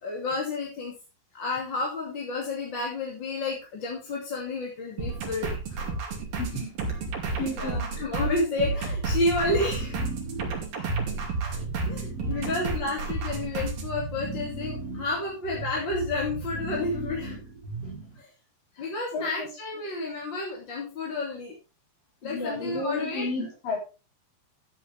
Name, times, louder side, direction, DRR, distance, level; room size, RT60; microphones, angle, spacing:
voice 1, 0.0-1.0 1.3-6.0 7.2-10.0 10.7-10.9 11.4-11.6 11.9-17.4 18.2-18.3 18.8-21.5 22.2-23.2, left 2 dB, 35° left, -2 dB, 2.9 m, -31 dB
sound 1, 5.0-13.9, right 3 dB, 75° right, 4.7 m, -31 dB
voice 2, 6.4-6.7 7.4-7.9 19.1-19.5 22.2-23.8, left 2 dB, 75° left, 0 dB, 5.6 m, -32 dB
sound 2, 9.0-18.2, right 3 dB, 30° right, 1.9 m, -37 dB
13.5 x 8.3 x 3.5 m, 0.31 s
omnidirectional pair, 4.0 m